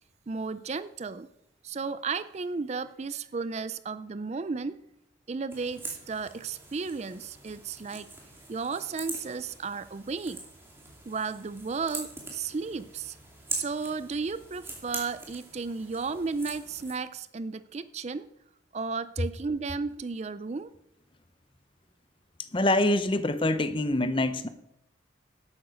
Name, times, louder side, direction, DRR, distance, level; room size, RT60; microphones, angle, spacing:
voice 1, 0.3-1.3 1.6-4.7 5.3-8.1 8.5-10.4 11.1-13.2 13.5-18.3 18.7-20.7, right 4 dB, 35° right, 15 dB, 0.4 m, -34 dB
sound 1, 5.5-16.9, right 2 dB, 10° right, 2.5 m, -43 dB
voice 2, 22.4-24.5, left 1 dB, 25° left, 12 dB, 0.7 m, -25 dB
11.5 x 8.7 x 6.3 m, 0.84 s
head